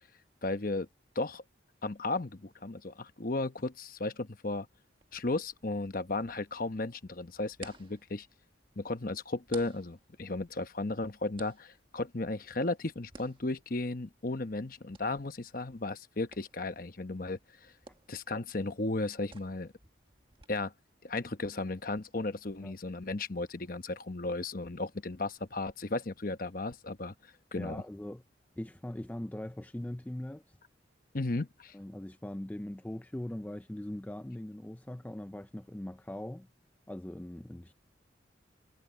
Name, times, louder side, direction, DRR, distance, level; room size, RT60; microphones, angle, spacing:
voice 1, 0.4-0.9 1.1-1.4 1.8-4.7 5.1-8.3 8.8-17.7 18.1-19.7 20.5-20.7 21.0-27.8 31.1-31.7, left 2 dB, 45° left, 1.0 m, -35 dB
sound 1, 5.0-20.5, right 3 dB, 25° right, 1.7 m, -57 dB
voice 2, 27.5-28.2 28.6-30.6 31.7-36.5 36.9-37.7, left 1 dB, 10° left, 0.4 m, -41 dB
head